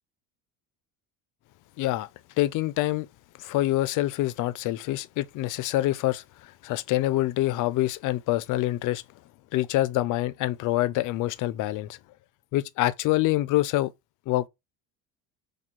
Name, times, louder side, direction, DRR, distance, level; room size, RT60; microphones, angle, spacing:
voice 1, 1.8-2.1 2.4-3.1 3.4-9.0 9.5-12.0 12.5-13.9 14.3-14.5, left 16 dB, 55° left, 0.6 m, -26 dB
4.2 x 2.7 x 4.4 m
cardioid pair, 130°, 38 cm